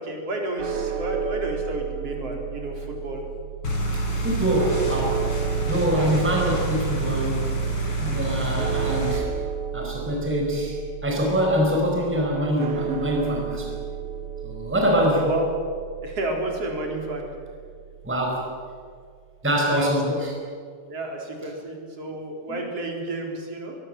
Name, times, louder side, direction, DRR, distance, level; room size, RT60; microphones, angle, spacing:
voice 1, 0.0-3.3 5.9-6.1 15.1-15.5 16.0-17.2 19.7-19.9 20.9-23.8, right 1 dB, 45° right, 1 dB, 4.9 m, -30 dB
sound 1, 0.6-18.8, right 8 dB, 60° right, 3.2 m, -34 dB
sound 2, 3.6-9.2, right 3 dB, 40° left, 4.8 m, -27 dB
voice 2, 3.9-5.2 5.7-7.4 8.0-9.3 9.7-10.8 11.0-13.8 14.4-15.2 18.0-18.5 19.4-20.3 22.5-22.6, equal, 5° right, 0 dB, 4.7 m, -24 dB
23.5 x 23.0 x 7.8 m, 2.1 s
omnidirectional pair, 4.1 m